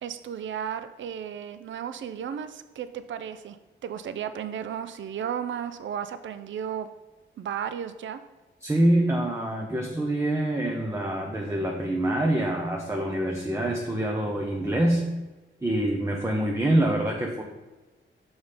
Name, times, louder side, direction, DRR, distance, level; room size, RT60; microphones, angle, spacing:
voice 1, 0.0-3.6 3.8-6.9 7.4-8.2, right 8 dB, 70° right, 11 dB, 0.4 m, -34 dB
voice 2, 8.6-15.1 15.6-17.4, right 1 dB, 15° right, 0 dB, 0.8 m, -25 dB
5.8 x 4.4 x 5.0 m, 1.2 s
cardioid pair, 75°, 20 cm